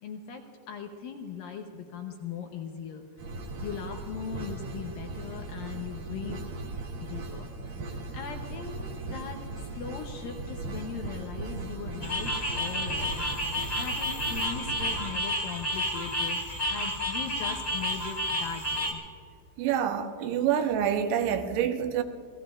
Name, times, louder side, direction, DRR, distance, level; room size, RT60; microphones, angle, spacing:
voice 1, 0.0-3.0 3.6-6.4 7.0-7.5 7.8-9.5 9.7-13.2 13.8-16.4 16.7-19.0, left 7 dB, 80° left, 3 dB, 2.0 m, -39 dB
sound 1, 3.2-15.1, right 2 dB, 60° right, 2.7 m, -38 dB
sound 2, 12.0-18.9, left 1 dB, 15° left, 1.8 m, -31 dB
voice 2, 19.6-22.0, right 9 dB, 75° right, 6 dB, 3.0 m, -27 dB
28.5 x 18.0 x 2.5 m, 2.3 s
omnidirectional pair, 5.3 m